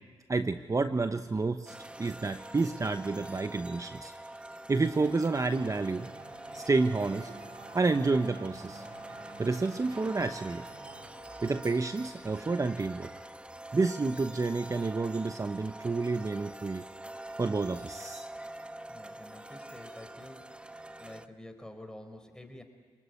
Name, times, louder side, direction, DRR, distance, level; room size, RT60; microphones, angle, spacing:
voice 1, 0.3-4.1 4.7-6.1 6.5-7.3 7.7-8.9 9.4-10.6 11.4-13.1 13.7-16.8 17.4-18.3, right 3 dB, 35° right, 9 dB, 1.0 m, -29 dB
sound 1, 1.7-21.3, right 1 dB, 10° right, 1.2 m, -45 dB
Race car auto racing / Accelerating revving vroom, 5.1-12.3, right 3 dB, 75° right, 3.9 m, -50 dB
voice 2, 18.9-20.5 21.0-22.6, left 1 dB, 5° left, 6 dB, 5.1 m, -48 dB
28.5 x 20.0 x 9.9 m, 1.5 s
supercardioid pair, 50°, 10 cm